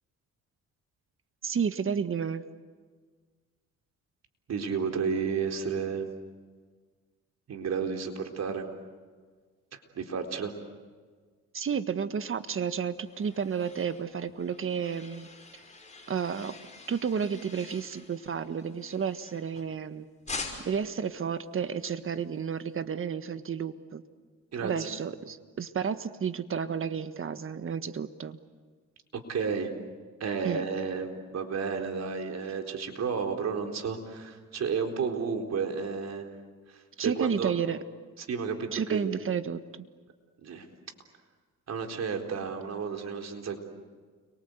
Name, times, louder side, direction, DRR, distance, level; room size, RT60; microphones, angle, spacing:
voice 1, 1.4-2.4 11.5-15.3 16.1-16.5 16.9-20.1 20.6-24.0 24.6-28.4 30.4-30.6 37.0-37.8 38.7-39.6, right 7 dB, 45° right, 10 dB, 1.6 m, -31 dB
voice 2, 4.5-6.1 7.5-8.7 9.7-10.5 24.5-25.0 29.3-29.7 30.2-36.3 36.7-37.5 38.2-39.0 40.4-40.7 41.7-43.6, right 6 dB, 60° right, 3 dB, 4.1 m, -32 dB
sound 1, 12.5-19.8 20.3-20.9, left 3 dB, 25° left, 5.8 m, -45 dB
30.0 x 23.5 x 8.1 m, 1.5 s
cardioid pair, 90°, 30 cm